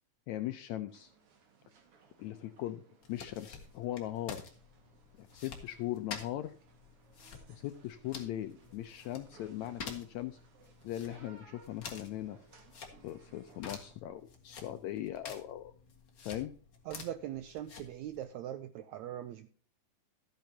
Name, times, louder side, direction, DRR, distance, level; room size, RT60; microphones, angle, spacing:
voice 1, 0.3-1.1 2.2-2.8 3.1-4.4 5.2-6.5 7.5-10.4 10.8-12.4 13.0-15.7 16.3-16.5, left 13 dB, 80° left, 9 dB, 1.6 m, -39 dB
sound 1, 0.9-13.9, right 5 dB, 50° right, 2.4 m, -62 dB
sound 2, 3.0-18.2, left 5 dB, 40° left, 1.8 m, -50 dB
voice 2, 16.9-19.5, right 11 dB, 85° right, 11 dB, 1.6 m, -41 dB
13.5 x 9.0 x 2.8 m, 0.43 s
omnidirectional pair, 3.9 m